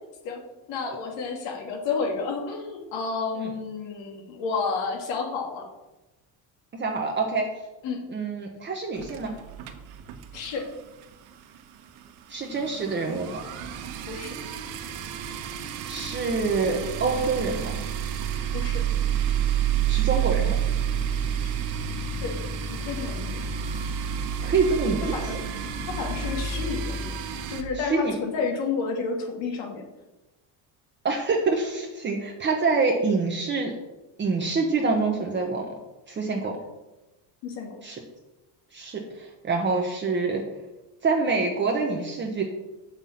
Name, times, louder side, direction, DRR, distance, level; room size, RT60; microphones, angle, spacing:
voice 1, 0.7-5.7 7.8-8.0 10.3-10.7 14.1-14.4 18.5-18.8 22.2-22.3 22.7-23.3 25.1-25.4 25.9-27.1 27.5-29.8 36.4-36.5 37.4-37.8, left 4 dB, 75° left, 1 dB, 2.0 m, -30 dB
voice 2, 6.7-7.5 8.1-9.3 12.3-13.4 15.9-17.8 19.9-20.5 24.4-25.4 27.7-28.2 31.0-33.8 34.2-35.7 36.1-36.6 37.8-38.0 38.7-40.4 41.0-42.4, right 4 dB, 25° right, 1 dB, 1.0 m, -26 dB
sound 1, 8.9-10.7 11.0-11.2 11.5-11.6 11.8-27.6, right 8 dB, 80° right, 1.2 m, -29 dB
6.9 x 5.9 x 7.0 m, 1.0 s
cardioid pair, 140°, 44 cm